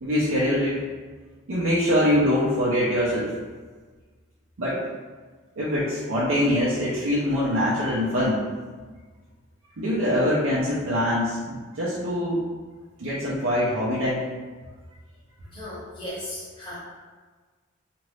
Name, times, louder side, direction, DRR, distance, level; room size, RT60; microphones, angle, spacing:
voice 1, 0.0-0.8 1.5-3.4 4.6-4.8 5.6-8.4 9.8-12.5 13.0-14.2, equal, 75° right, -9 dB, 0.6 m, -23 dB
voice 2, 15.5-16.8, left 1 dB, 25° left, -8 dB, 1.0 m, -36 dB
2.9 x 2.5 x 3.1 m, 1.4 s
head